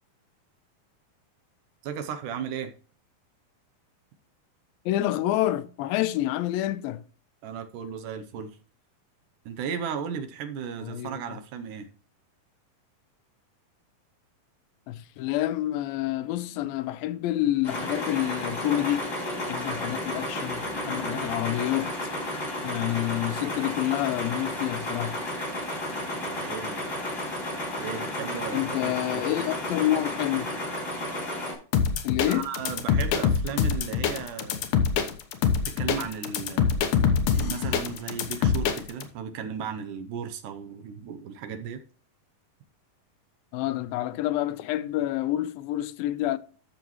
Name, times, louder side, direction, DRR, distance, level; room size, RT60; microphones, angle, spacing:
voice 1, 1.8-2.7 7.4-8.5 9.5-11.9 26.3-26.8 27.8-29.5 32.3-34.7 35.8-36.8 37.3-41.8, right 7 dB, 75° right, 2.2 m, -35 dB
voice 2, 4.9-7.0 10.8-11.4 14.9-19.1 19.4-21.9 22.6-25.2 28.5-30.5 32.0-32.5 43.5-46.4, left 14 dB, 90° left, 2.4 m, -28 dB
sound 1, 17.6-31.5, left 1 dB, 25° left, 4.2 m, -32 dB
sound 2, 31.7-39.0, left 7 dB, 70° left, 2.4 m, -24 dB
13.0 x 6.7 x 3.1 m
omnidirectional pair, 4.1 m